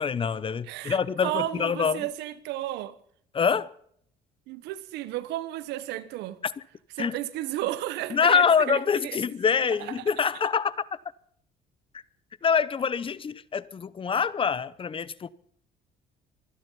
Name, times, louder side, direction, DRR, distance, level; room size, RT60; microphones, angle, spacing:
voice 1, 0.0-2.1 3.3-3.7 6.4-6.5 7.0-7.2 8.1-10.7 12.4-15.3, left 6 dB, 30° left, 0.8 m, -25 dB
voice 2, 0.7-2.9 4.5-6.4 7.0-9.2 9.8-9.9, right 14 dB, 90° right, 1.2 m, -33 dB
25.0 x 10.0 x 5.6 m
cardioid pair, 110°, 17 cm